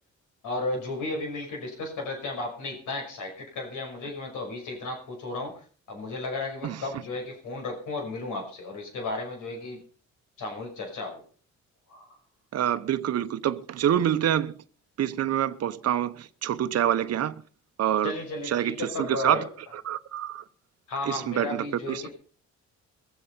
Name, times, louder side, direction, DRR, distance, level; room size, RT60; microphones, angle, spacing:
voice 1, 0.4-9.8 10.4-11.2 11.9-12.2 18.0-19.5 20.9-22.1, left 2 dB, 85° left, 5.8 m, -34 dB
voice 2, 12.5-14.5 15.0-17.3 17.8-18.1 18.5-19.4 19.7-20.4 21.1-22.1, right 10 dB, 55° right, 0.9 m, -26 dB
21.5 x 7.8 x 5.6 m
cardioid pair, 90°, 30 cm